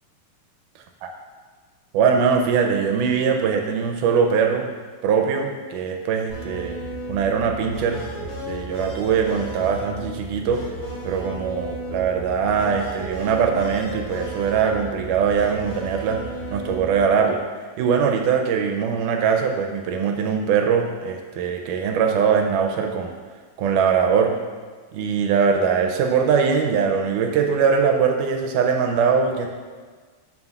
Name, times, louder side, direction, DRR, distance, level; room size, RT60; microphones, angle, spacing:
voice 1, 1.9-4.7 5.0-6.8 7.1-10.6 11.1-16.2 16.5-17.4 17.8-23.1 23.6-24.4 24.9-29.5, right 6 dB, 80° right, 3 dB, 2.0 m, -21 dB
sound 1, 6.3-17.1, equal, 40° left, 2.9 m, -34 dB
12.0 x 5.7 x 2.3 m, 1.5 s
omnidirectional pair, 3.9 m